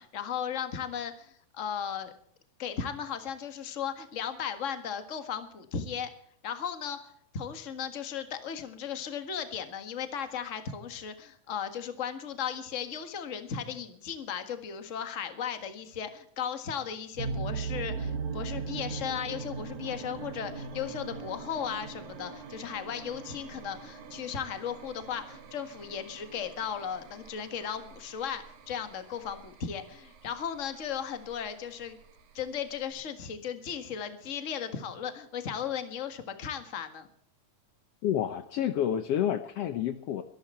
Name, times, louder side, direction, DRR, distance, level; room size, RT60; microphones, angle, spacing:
voice 1, 0.0-2.1 2.6-6.1 6.4-32.0 32.3-37.1, left 8 dB, 40° left, 8 dB, 1.1 m, -36 dB
sound 1, 17.2-32.9, right 5 dB, 60° right, 3.0 m, -41 dB
voice 2, 38.0-40.2, left 10 dB, 90° left, 9 dB, 1.3 m, -29 dB
23.5 x 12.0 x 4.4 m, 0.65 s
omnidirectional pair, 3.9 m